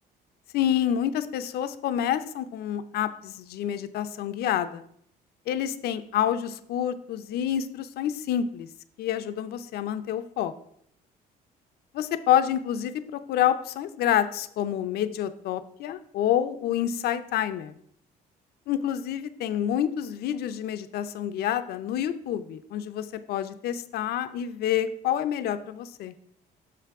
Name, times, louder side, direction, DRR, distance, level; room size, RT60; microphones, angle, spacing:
voice 1, 0.5-4.8 5.5-8.7 9.0-10.5 11.9-17.7 18.7-26.1, left 10 dB, 70° left, 12 dB, 0.5 m, -28 dB
6.3 x 5.9 x 4.7 m, 0.69 s
cardioid pair, 110°, 17 cm